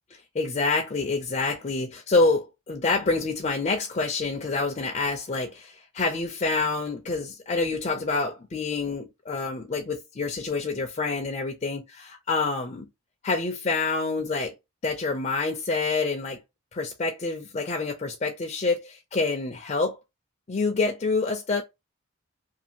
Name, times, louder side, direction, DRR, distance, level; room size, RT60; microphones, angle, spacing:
voice 1, 0.1-12.9 13.2-14.5 14.8-16.4 16.7-20.0 20.5-21.6, left 3 dB, 30° left, 0.4 m, -27 dB
2.6 x 2.4 x 2.7 m
head